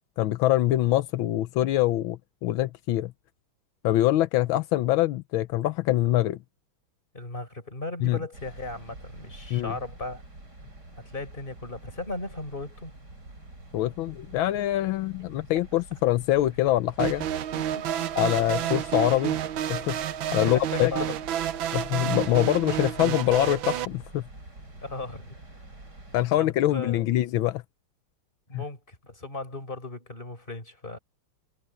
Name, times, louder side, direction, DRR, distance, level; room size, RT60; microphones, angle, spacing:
voice 1, 0.2-3.1 3.8-6.4 8.0-8.2 9.5-9.7 13.7-17.3 18.2-19.4 19.7-20.0 20.3-20.9 21.7-24.2 26.1-27.6 28.5-28.6, left 14 dB, 85° left, 1.5 m, -24 dB
voice 2, 7.1-10.2 11.1-12.9 17.5-17.6 20.3-21.2 24.8-25.4 26.4-27.0 28.5-31.0, left 2 dB, 25° left, 4.5 m, -36 dB
sound 1, 8.3-26.3, right 2 dB, 55° right, 7.0 m, -47 dB
sound 2, 17.0-23.9, right 11 dB, 80° right, 1.6 m, -30 dB
omnidirectional pair, 2.2 m